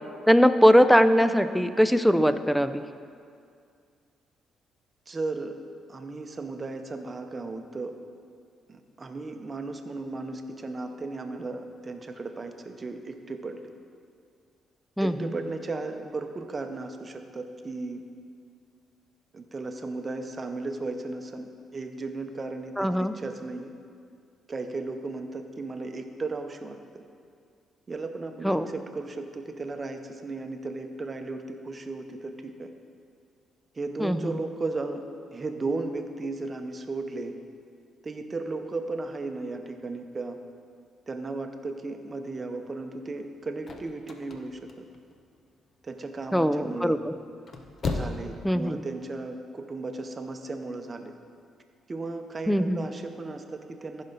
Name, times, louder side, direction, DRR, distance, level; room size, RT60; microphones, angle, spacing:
voice 1, 0.3-2.8 15.0-15.3 22.8-23.1 28.4-28.7 34.0-34.3 46.3-47.0 48.4-48.8 52.5-52.8, equal, ahead, 11 dB, 0.4 m, -21 dB
voice 2, 5.1-5.5 5.9-7.9 8.7-13.6 15.0-18.0 19.3-23.7 24.5-27.0 27.9-32.7 33.7-35.0 35.3-37.3 38.0-40.4 41.1-44.8 45.8-47.0 47.9-51.1 51.9-54.0, right 3 dB, 30° right, 6 dB, 0.8 m, -35 dB
sound 1, 43.3-45.5 45.9-46.4 47.2-48.3 48.6-48.7, left 3 dB, 45° left, 0.8 m, -34 dB
14.5 x 5.5 x 4.0 m, 2.3 s
cardioid pair, 90°, 0 cm